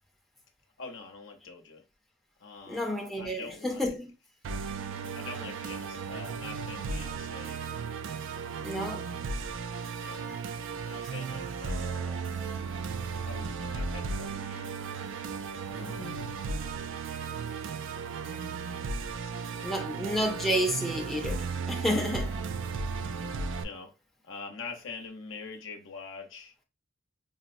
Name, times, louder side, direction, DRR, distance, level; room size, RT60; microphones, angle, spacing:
voice 1, 0.8-1.8 2.4-3.9 5.1-7.6 10.0-10.4 10.8-12.3 13.2-14.7 15.6-16.3 19.2-19.7 23.6-23.9 24.2-26.5, left 4 dB, 80° left, 0.7 m, -44 dB
voice 2, 2.6-4.1 8.6-9.1 10.3-10.4 11.0-11.1 15.8-16.3 19.6-22.4, equal, ahead, 0.5 m, -31 dB
Musical instrument, 4.4-23.6, right 5 dB, 70° right, 0.3 m, -35 dB
4.0 x 2.0 x 2.5 m
head